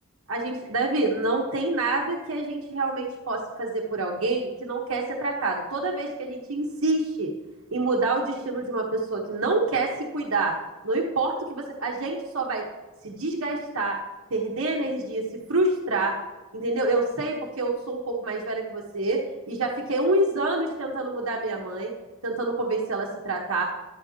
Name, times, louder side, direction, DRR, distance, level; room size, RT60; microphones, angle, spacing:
voice 1, 0.3-7.3 7.7-10.5 10.8-12.6 13.0-13.9 14.3-15.2 15.5-16.1 16.5-19.2 19.5-21.9 22.2-23.6, right 2 dB, 90° right, -2 dB, 1.3 m, -27 dB
11.5 x 10.5 x 2.9 m, 1.2 s
head